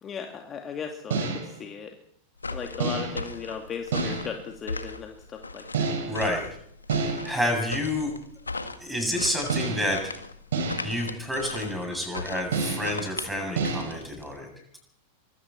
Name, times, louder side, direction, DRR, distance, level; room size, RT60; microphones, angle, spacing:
voice 1, 0.0-2.0 2.5-6.1, left 6 dB, 25° left, 3 dB, 2.4 m, -37 dB
sound 1, 1.1-1.6 2.8-3.3 3.9-4.4 5.7-6.3 6.9-7.5 9.5-10.0 10.5-11.0 12.5-13.0 13.6-13.9, right 4 dB, 60° right, 6.2 m, -29 dB
sound 2, 2.4-14.4, left 3 dB, 80° left, 1.8 m, -38 dB
voice 2, 6.0-6.4 6.9-8.1 8.8-10.1 10.8-14.5, left 1 dB, 5° right, 2 dB, 7.8 m, -29 dB
24.5 x 23.5 x 4.5 m, 0.69 s
figure-of-eight pair, 90°, 0 cm